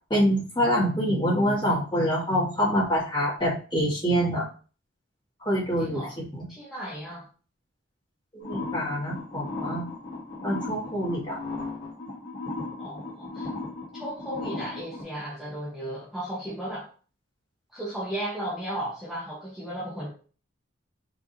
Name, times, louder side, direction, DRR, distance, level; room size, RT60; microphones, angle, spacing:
voice 1, 0.1-4.5 5.4-6.1 6.3-6.4 8.3-9.8 10.4-11.4, equal, 20° left, -8 dB, 2.0 m, -25 dB
voice 2, 5.8-6.1 6.5-7.3 12.8-13.5 13.9-16.9 17.7-20.1, right 1 dB, ahead, -9 dB, 1.0 m, -35 dB
sound 1, 8.4-15.0, left 3 dB, 55° left, 1.9 m, -36 dB
4.8 x 3.5 x 2.7 m, 0.39 s
head